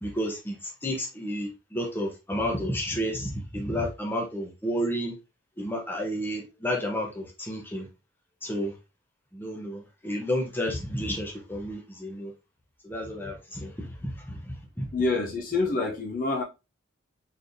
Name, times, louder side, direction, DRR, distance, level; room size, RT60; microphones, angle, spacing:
voice 1, 0.0-5.1 5.6-7.9 8.4-8.7 9.3-12.3 12.8-14.9, equal, 10° left, 0.8 m, -31 dB
voice 2, 14.9-16.4, left 3 dB, 40° left, 0.6 m, -27 dB
3.9 x 3.2 x 2.6 m
head